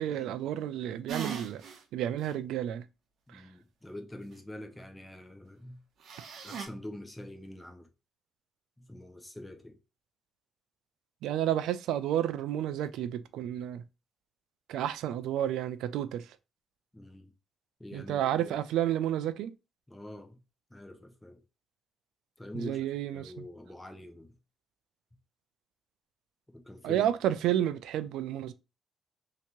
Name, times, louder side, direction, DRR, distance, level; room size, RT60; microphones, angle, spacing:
voice 1, 0.0-1.6 1.9-2.8 3.3-3.4 11.2-13.8 14.7-16.4 17.9-19.5 22.5-23.3 26.8-28.5, right 11 dB, 85° right, 0.3 m, -31 dB
sound 1, 1.1-1.8 2.2-2.3 6.0-6.7, right 7 dB, 70° right, 0.8 m, -38 dB
voice 2, 3.3-5.8 6.4-7.9 8.8-9.8 16.9-17.3 17.8-18.6 19.9-20.4 20.7-21.4 22.4-22.8 23.1-24.4 26.5-27.1, left 1 dB, 10° left, 0.8 m, -45 dB
3.3 x 2.9 x 2.9 m
cardioid pair, 90°, 0 cm